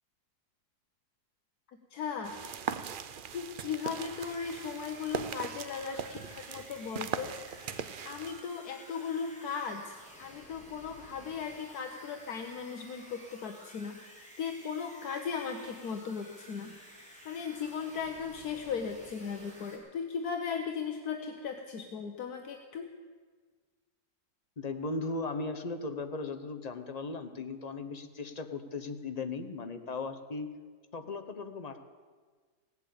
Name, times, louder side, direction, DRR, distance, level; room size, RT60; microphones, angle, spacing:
voice 1, 1.9-2.4 3.3-7.3 8.0-16.8 17.2-22.9, left 6 dB, 75° left, 5 dB, 1.4 m, -37 dB
sound 1, 2.2-8.4, right 7 dB, 85° right, 0.4 m, -40 dB
sound 2, 3.8-19.8, equal, 5° left, 2.6 m, -53 dB
voice 2, 24.6-30.5 30.9-31.9, left 3 dB, 35° left, 8 dB, 0.7 m, -37 dB
17.0 x 8.3 x 8.6 m, 1.5 s
omnidirectional pair, 1.7 m